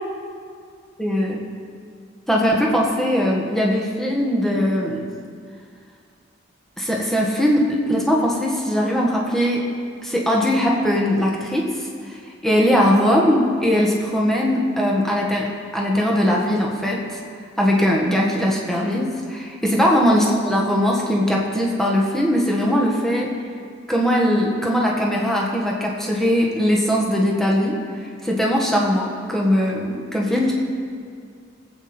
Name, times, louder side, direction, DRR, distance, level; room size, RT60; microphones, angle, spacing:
voice 1, 1.0-1.4 2.3-5.1 6.8-9.6 10.0-12.2 12.4-15.4 15.7-17.0 17.6-23.3 23.9-27.7 28.0-30.5, equal, ahead, -3 dB, 1.5 m, -20 dB
18.5 x 8.3 x 4.4 m, 2.2 s
head